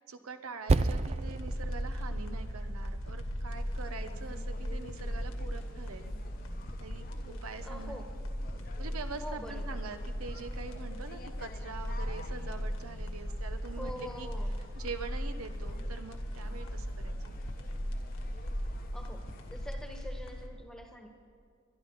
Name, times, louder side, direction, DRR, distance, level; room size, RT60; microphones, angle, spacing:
voice 1, 0.0-6.1 6.8-8.0 8.8-14.3 14.7-17.2, right 4 dB, 80° right, 9 dB, 0.8 m, -44 dB
sound 1, 0.7-20.5, equal, 75° left, 1.9 m, -38 dB
Percussion, 0.7-5.5, right 3 dB, 30° right, 0.4 m, -34 dB
sound 2, 3.5-19.7, left 3 dB, 40° left, 0.9 m, -53 dB
voice 2, 7.6-8.1 9.2-9.8 13.8-14.6 18.9-19.2 19.5-21.1, left 1 dB, 5° left, 2 dB, 1.3 m, -44 dB
22.0 x 12.0 x 4.0 m, 2.3 s
head